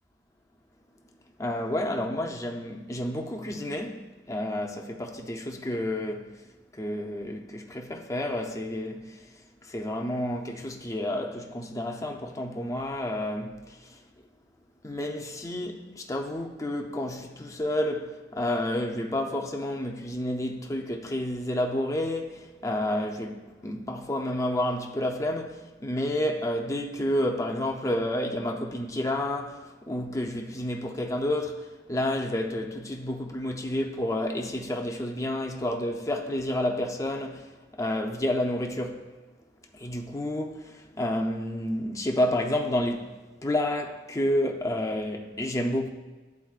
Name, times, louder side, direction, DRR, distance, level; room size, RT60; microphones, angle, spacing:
voice 1, 1.4-6.3 6.8-9.3 9.6-14.0 14.8-37.5 37.8-39.1 39.7-43.1 43.4-45.9, left 1 dB, 20° left, 0.6 m, -30 dB
11.0 x 4.1 x 2.4 m
head